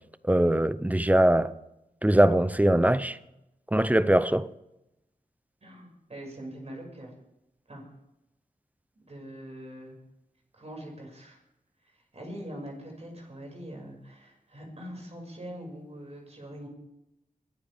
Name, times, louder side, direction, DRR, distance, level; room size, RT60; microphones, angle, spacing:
voice 1, 0.3-1.5 2.0-3.2 3.7-4.5, right 1 dB, 10° right, 0.6 m, -21 dB
voice 2, 5.6-7.1 7.7-7.8 9.1-10.0 10.5-11.4 12.1-16.7, equal, 45° right, 5.9 m, -42 dB
22.0 x 14.0 x 3.5 m
wide cardioid pair, 95°, 15 cm